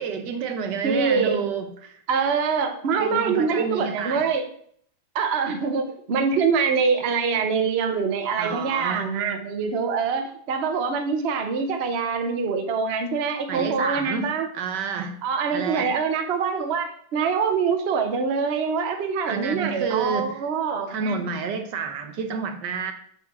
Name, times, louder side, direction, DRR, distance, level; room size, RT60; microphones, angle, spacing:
voice 1, 0.0-2.0 3.0-4.3 8.4-9.1 13.5-15.2 15.5-15.9 19.3-20.4 20.9-22.9, right 5 dB, 65° right, 7 dB, 1.3 m, -29 dB
voice 2, 0.8-1.4 2.1-4.5 5.1-14.5 15.2-21.2, right 5 dB, 80° right, 7 dB, 0.5 m, -24 dB
7.3 x 4.3 x 5.9 m, 0.62 s
omnidirectional pair, 2.3 m